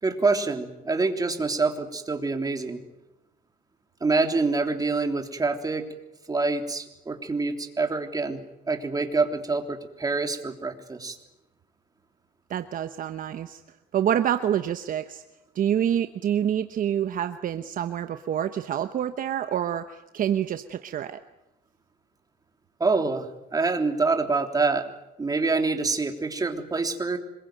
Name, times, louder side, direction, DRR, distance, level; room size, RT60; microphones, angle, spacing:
voice 1, 0.0-2.8 4.0-5.9 6.3-8.4 8.7-11.1 22.8-23.2 23.5-24.9 25.2-27.2, right 3 dB, 20° right, 5 dB, 3.3 m, -26 dB
voice 2, 12.5-13.6 13.9-15.2 15.5-21.2, right 10 dB, 55° right, 9 dB, 1.1 m, -27 dB
26.5 x 22.0 x 9.2 m, 0.94 s
cardioid pair, 110°, 17 cm